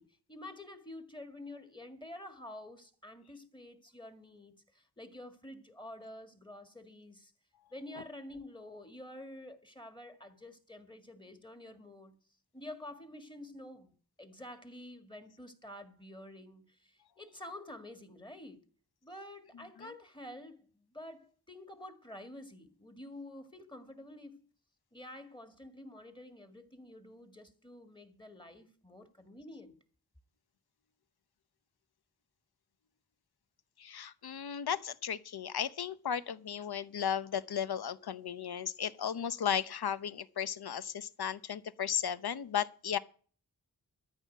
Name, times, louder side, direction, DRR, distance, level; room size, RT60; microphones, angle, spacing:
voice 1, 0.0-7.3 7.7-12.2 12.5-13.9 14.2-18.7 19.0-24.4 24.9-29.8, left 1 dB, 10° left, 1.9 m, -49 dB
voice 2, 33.8-43.0, left 8 dB, 75° left, 0.8 m, -35 dB
13.5 x 5.6 x 9.4 m
wide cardioid pair, 115°, 38 cm